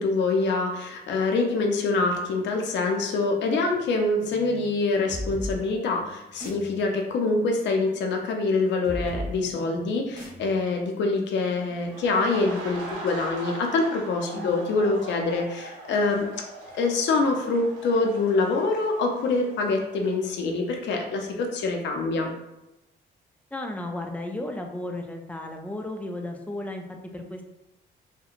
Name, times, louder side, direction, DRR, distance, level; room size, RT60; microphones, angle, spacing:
voice 1, 0.0-16.3 16.7-22.3, left 3 dB, 65° left, 2 dB, 0.5 m, -25 dB
sound 1, 5.1-12.5, equal, 20° right, 1.0 m, -39 dB
sound 2, 11.8-20.7 21.0-21.2, right 2 dB, 80° right, 0.7 m, -41 dB
voice 2, 14.3-14.7 23.5-27.4, left 1 dB, 5° left, 3 dB, 0.3 m, -34 dB
2.7 x 2.1 x 2.4 m, 0.94 s
cardioid pair, 90°, 20 cm